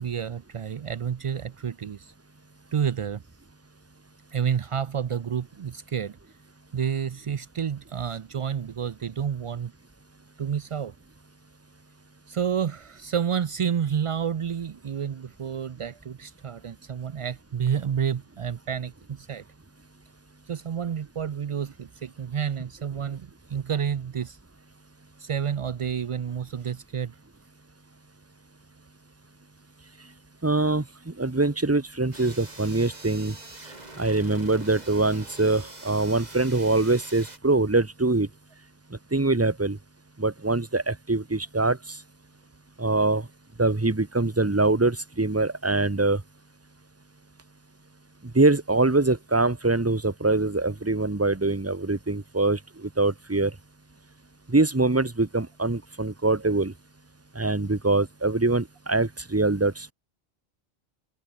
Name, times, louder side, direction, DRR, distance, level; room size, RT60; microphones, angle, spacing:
voice 1, 0.0-2.1 2.7-3.2 4.3-6.2 6.7-9.7 10.4-10.9 12.3-19.4 20.5-24.4 25.2-27.1, right 8 dB, 60° right, 0.3 m, -29 dB
voice 2, 30.4-33.3 34.0-38.3 39.1-39.8 40.2-41.8 42.8-43.3 43.6-46.2 48.3-53.5 54.5-56.7 57.3-59.9, right 2 dB, 15° right, 0.9 m, -23 dB
sound 1, 32.1-37.4, right 2 dB, 40° right, 3.0 m, -44 dB
omnidirectional pair, 1.1 m